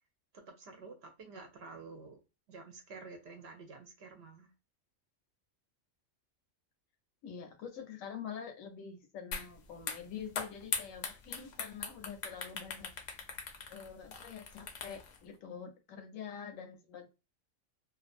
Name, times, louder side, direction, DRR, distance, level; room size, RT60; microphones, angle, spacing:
voice 1, 0.3-2.2 2.5-4.5, right 4 dB, 65° right, 0.7 m, -50 dB
voice 2, 7.2-12.9 13.7-17.1, left 7 dB, 80° left, 1.0 m, -46 dB
sound 1, 9.3-9.5 9.8-15.2, left 5 dB, 65° left, 0.7 m, -40 dB
2.5 x 2.3 x 2.4 m
omnidirectional pair, 1.4 m